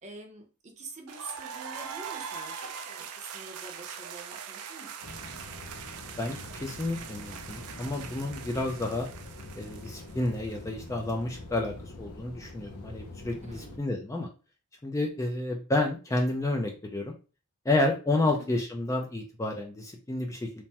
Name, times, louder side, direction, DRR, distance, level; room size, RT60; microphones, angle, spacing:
voice 1, 0.0-4.9 13.4-13.8 18.2-18.5, right 3 dB, 30° right, 3 dB, 0.6 m, -46 dB
sound 1, 1.1-10.8, right 7 dB, 80° right, 0.4 m, -42 dB
sound 2, 5.0-13.8, left 2 dB, 75° left, 0.6 m, -44 dB
voice 2, 6.2-9.1 9.6-14.3 14.8-17.1 17.7-20.6, left 2 dB, 15° left, 2 dB, 0.3 m, -30 dB
3.2 x 2.1 x 2.8 m, 0.33 s
head